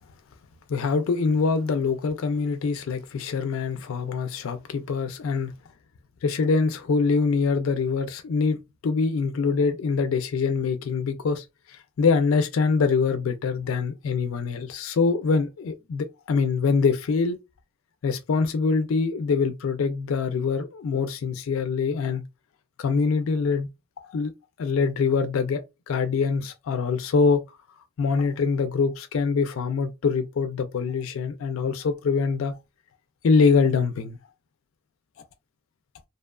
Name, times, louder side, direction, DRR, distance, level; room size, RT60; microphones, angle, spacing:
voice 1, 0.7-5.5 6.2-8.6 8.8-17.4 18.0-22.2 22.8-23.7 24.0-24.3 24.6-27.4 28.0-32.6 33.2-34.2, left 5 dB, 85° left, 0.4 m, -24 dB
2.6 x 2.3 x 2.2 m
head